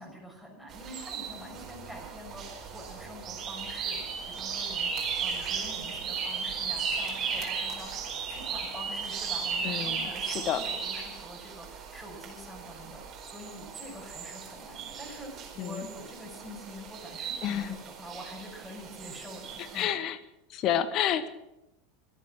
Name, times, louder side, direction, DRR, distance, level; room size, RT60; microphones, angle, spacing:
voice 1, 0.0-20.0, equal, 5° left, 0 dB, 6.2 m, -46 dB
sound 1, 0.7-19.9, right 6 dB, 35° right, 4.6 m, -36 dB
voice 2, 9.6-10.6 15.6-15.9 17.4-17.8 19.7-20.2 20.5-21.3, left 10 dB, 40° left, 14 dB, 1.2 m, -30 dB
24.5 x 8.7 x 6.1 m, 0.91 s
figure-of-eight pair, 80°, 0 cm